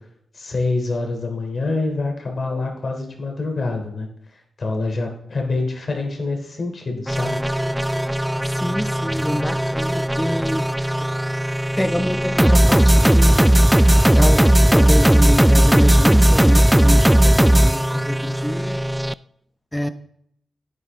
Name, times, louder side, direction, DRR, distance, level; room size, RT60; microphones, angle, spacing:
voice 1, 0.3-7.4, left 3 dB, 55° left, 2 dB, 3.5 m, -26 dB
sound 1, 7.1-19.1, right 1 dB, 10° right, 0.4 m, -16 dB
voice 2, 8.4-11.1 11.8-13.5 14.1-18.8 19.7-19.9, left 1 dB, 10° left, 10 dB, 1.0 m, -26 dB
11.0 x 9.7 x 3.8 m, 0.71 s
supercardioid pair, 45°, 0 cm